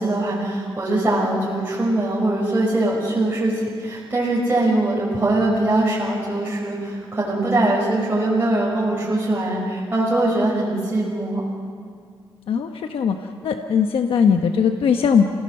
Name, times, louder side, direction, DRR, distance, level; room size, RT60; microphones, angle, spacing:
voice 1, 0.0-11.4, right 2 dB, 20° right, -6 dB, 5.6 m, -22 dB
voice 2, 12.5-13.1 13.4-15.3, left 6 dB, 80° left, 5 dB, 1.1 m, -19 dB
29.0 x 17.5 x 6.6 m, 2.1 s
cardioid pair, 100°, 9 cm